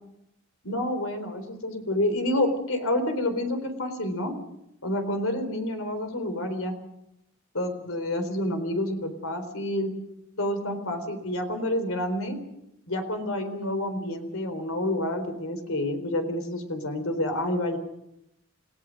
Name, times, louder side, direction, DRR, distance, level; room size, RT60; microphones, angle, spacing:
voice 1, 0.6-4.3 4.8-6.7 7.5-9.9 10.4-12.4 12.9-17.8, left 1 dB, 65° left, 7 dB, 4.1 m, -28 dB
29.5 x 17.0 x 6.5 m, 0.81 s
head